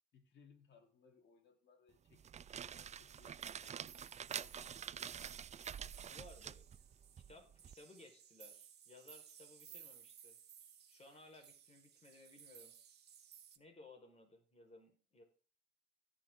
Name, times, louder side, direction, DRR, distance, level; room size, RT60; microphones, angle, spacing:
voice 1, 0.1-5.5, left 5 dB, 65° left, 3.6 m, -68 dB
sound 1, 2.1-7.7, right 8 dB, 35° right, 0.4 m, -47 dB
sound 2, 3.1-13.6, right 8 dB, 55° right, 1.7 m, -60 dB
voice 2, 5.9-6.6 7.3-10.4 10.9-12.7 13.6-15.2, left 2 dB, 30° left, 4.8 m, -60 dB
17.0 x 6.4 x 3.8 m
cardioid pair, 90°, 20 cm